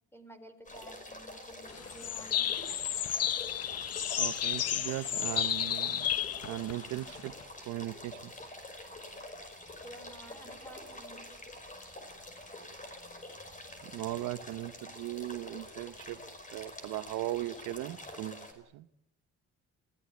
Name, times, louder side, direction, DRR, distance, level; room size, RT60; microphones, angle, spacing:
voice 1, 0.1-2.5 9.8-11.4, right 1 dB, 10° left, 10 dB, 4.3 m, -52 dB
sound 1, 0.6-18.5, left 1 dB, 25° left, 5.3 m, -47 dB
sound 2, 1.7-7.4, left 10 dB, 55° left, 0.9 m, -32 dB
voice 2, 4.2-6.1 6.4-7.3 7.7-8.3 13.8-16.2 16.5-18.9, right 16 dB, 90° right, 14 dB, 0.9 m, -38 dB
28.5 x 17.0 x 9.4 m, 0.80 s
cardioid pair, 90°, 30 cm